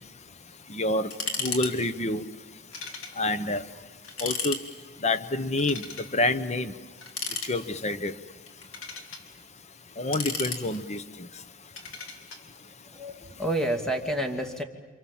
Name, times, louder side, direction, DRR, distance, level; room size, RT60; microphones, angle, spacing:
voice 1, 0.7-1.1 1.4-2.2 3.2-3.6 4.2-4.6 5.0-5.9 6.1-6.7 7.5-8.1 10.0-11.0, left 2 dB, 35° left, 12 dB, 1.1 m, -27 dB
sound 1, 1.1-1.7 2.0-2.1 2.7-3.2 3.5-3.6 4.0-4.6 5.6-6.1 7.0-7.9 8.5-9.2 9.9-11.0 11.8-12.4, left 4 dB, 80° left, 3.3 m, -34 dB
voice 2, 12.8-14.6, right 1 dB, 5° left, 4 dB, 2.4 m, -29 dB
29.0 x 27.0 x 7.4 m, 1.3 s
head